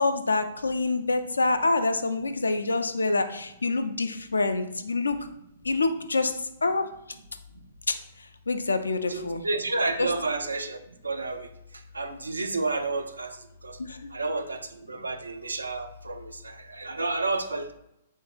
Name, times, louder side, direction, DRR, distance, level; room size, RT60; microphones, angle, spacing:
voice 1, 0.0-5.2 5.6-6.3 6.6-6.8 7.9-8.0 8.5-9.4 10.0-10.1 13.8-14.1, left 3 dB, 80° left, 8 dB, 0.4 m, -26 dB
voice 2, 9.1-10.8 11.0-11.5 11.9-13.3 13.6-13.8 14.1-17.7, right 3 dB, 80° right, 8 dB, 0.4 m, -30 dB
3.9 x 3.5 x 2.5 m, 0.82 s
figure-of-eight pair, 115°, 0 cm